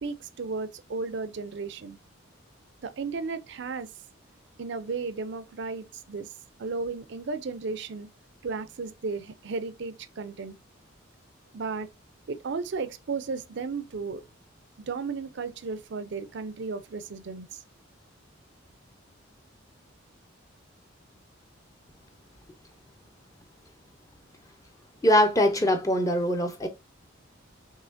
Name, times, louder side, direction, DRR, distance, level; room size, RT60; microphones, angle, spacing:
voice 1, 0.0-2.0 2.8-3.9 4.6-6.3 6.6-8.1 8.4-10.5 11.5-11.9 12.3-14.2 14.9-17.6, right 4 dB, 60° right, 0.5 m, -34 dB
voice 2, 25.0-26.7, equal, 15° left, 0.5 m, -22 dB
5.6 x 3.2 x 2.5 m
head